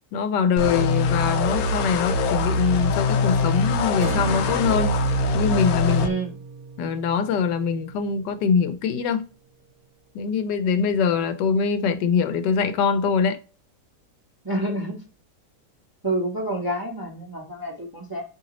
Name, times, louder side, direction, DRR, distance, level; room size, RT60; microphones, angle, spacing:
voice 1, 0.1-5.0 5.3-6.2 6.8-9.3 10.1-13.4, left 6 dB, 90° left, 1.2 m, -23 dB
sound 1, 0.6-6.1, left 3 dB, 70° left, 1.0 m, -23 dB
sound 2, 4.0-8.4, right 4 dB, 55° right, 1.1 m, -36 dB
voice 2, 6.0-6.4 14.4-15.0 16.0-18.2, right 1 dB, 35° right, 0.3 m, -28 dB
3.8 x 3.1 x 2.9 m
omnidirectional pair, 1.8 m